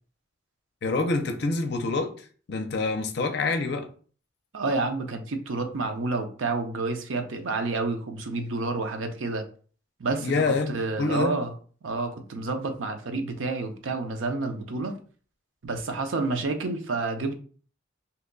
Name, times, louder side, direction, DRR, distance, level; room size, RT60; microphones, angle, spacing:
voice 1, 0.8-2.1 2.5-3.9 10.2-11.4, left 3 dB, 55° left, 0.5 m, -26 dB
voice 2, 4.5-9.4 10.0-11.6 11.8-15.0 15.6-17.3, right 3 dB, 85° right, 0.6 m, -29 dB
2.8 x 2.2 x 3.7 m
head